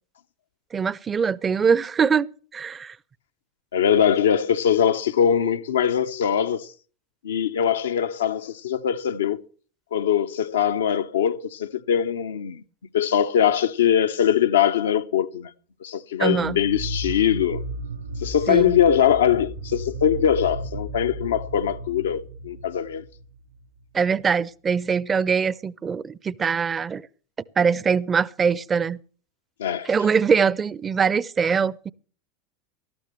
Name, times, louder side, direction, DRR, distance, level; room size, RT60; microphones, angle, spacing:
voice 1, 0.7-3.0 16.2-16.6 18.5-18.8 23.9-27.0 27.6-29.0 29.8-31.9, right 6 dB, 25° right, 0.6 m, -22 dB
voice 2, 3.7-6.7 7.2-9.4 9.9-12.6 12.9-15.5 15.8-17.6 18.2-23.0 29.6-29.9, left 9 dB, 75° left, 0.7 m, -22 dB
sound 1, 16.3-23.6, right 1 dB, 85° right, 4.5 m, -34 dB
18.5 x 13.0 x 3.2 m
figure-of-eight pair, 80°, 0 cm